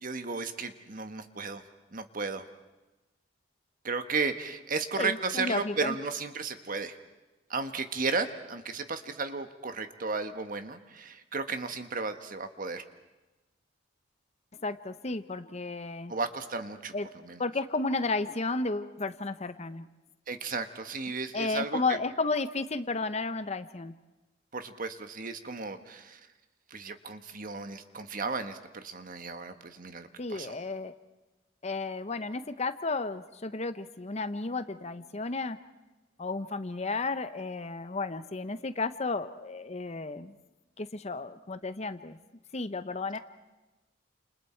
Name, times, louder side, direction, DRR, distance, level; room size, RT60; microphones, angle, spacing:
voice 1, 0.0-1.6 1.9-2.4 3.8-6.9 7.5-12.8 16.1-16.9 17.2-17.4 20.3-22.0 24.5-26.2 26.7-30.5, right 4 dB, 45° right, 8 dB, 1.4 m, -34 dB
voice 2, 5.0-6.0 14.6-16.1 16.9-17.1 17.4-19.9 21.3-23.9 30.2-30.9 31.6-35.6 36.2-40.3 40.8-42.2 42.5-43.2, left 3 dB, 35° left, 11 dB, 0.8 m, -33 dB
30.0 x 28.0 x 4.5 m, 1.1 s
head